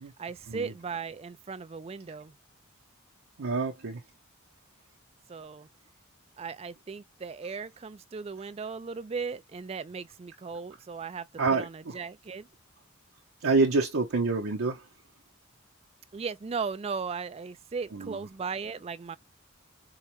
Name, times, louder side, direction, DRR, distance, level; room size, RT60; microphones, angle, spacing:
voice 1, 0.2-2.3 5.3-5.7 6.4-12.5 16.1-19.2, right 5 dB, 30° right, 0.3 m, -37 dB
voice 2, 3.4-4.0 11.4-11.6 13.4-14.8 17.9-18.2, right 3 dB, 80° right, 0.7 m, -27 dB
4.7 x 2.1 x 2.9 m
head